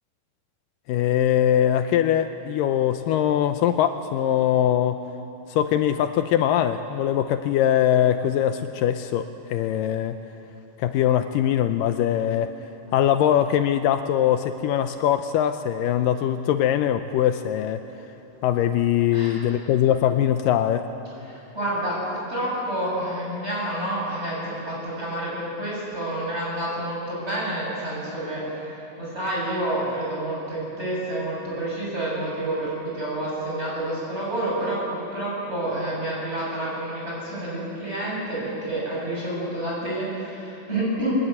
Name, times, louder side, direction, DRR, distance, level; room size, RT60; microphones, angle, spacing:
voice 1, 0.9-5.0 5.5-10.2 10.8-12.5 12.9-17.8 18.4-20.9, left 10 dB, 80° left, 8 dB, 2.3 m, -22 dB
voice 2, 19.1-19.5 21.3-41.1, right 1 dB, 15° right, -5 dB, 7.9 m, -29 dB
22.0 x 20.5 x 9.6 m, 2.9 s
omnidirectional pair, 4.1 m